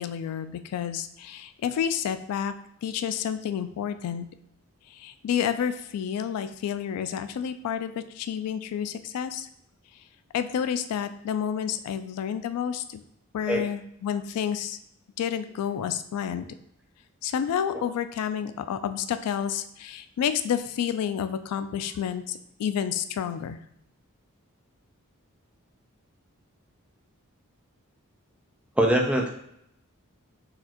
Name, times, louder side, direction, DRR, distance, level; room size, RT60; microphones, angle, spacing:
voice 1, 0.0-2.5 2.8-4.3 4.9-9.5 10.3-13.0 13.3-14.8 15.2-16.5 17.2-23.6, left 8 dB, 85° left, 11 dB, 0.3 m, -30 dB
voice 2, 28.8-29.3, right 1 dB, 5° right, 1 dB, 0.4 m, -22 dB
4.0 x 2.6 x 2.8 m, 0.73 s
head